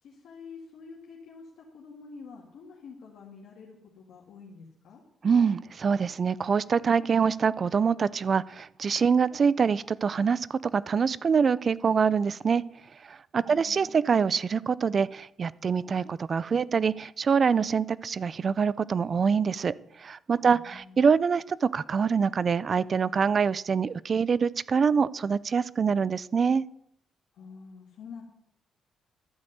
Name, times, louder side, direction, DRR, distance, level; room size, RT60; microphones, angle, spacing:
voice 1, 0.0-5.0 13.4-14.0 20.4-21.1 27.3-28.2, left 5 dB, 75° left, -2 dB, 2.0 m, -47 dB
voice 2, 5.2-12.6 13.0-26.7, right 6 dB, 45° right, 20 dB, 0.4 m, -25 dB
12.5 x 5.3 x 7.9 m, 0.77 s
cardioid pair, 90°, 0 cm